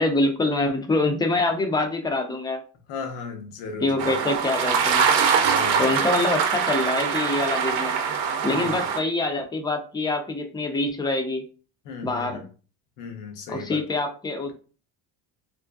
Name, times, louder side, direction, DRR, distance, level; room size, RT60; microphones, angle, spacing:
voice 1, 0.0-2.6 3.8-5.1 5.8-7.9 8.4-11.4 12.0-12.4 13.5-14.5, left 2 dB, 10° left, 0.4 m, -25 dB
voice 2, 2.9-4.2 5.3-6.1 8.4-8.8 11.8-12.5 13.0-13.8, left 4 dB, 85° left, 0.9 m, -36 dB
sound 1, 4.0-9.0, right 6 dB, 75° right, 0.6 m, -23 dB
2.5 x 2.4 x 2.2 m
supercardioid pair, 95°, 46 cm